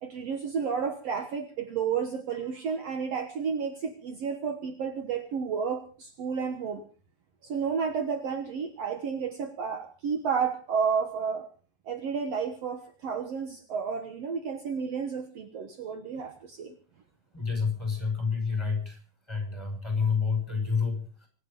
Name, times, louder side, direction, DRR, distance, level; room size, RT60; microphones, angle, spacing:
voice 1, 0.0-6.8 7.4-11.5 11.8-16.8, right 6 dB, 75° right, 8 dB, 1.5 m, -31 dB
voice 2, 17.3-19.0 19.3-21.3, left 5 dB, 5° left, 5 dB, 5.5 m, -29 dB
25.0 x 10.5 x 5.4 m, 0.40 s
omnidirectional pair, 4.8 m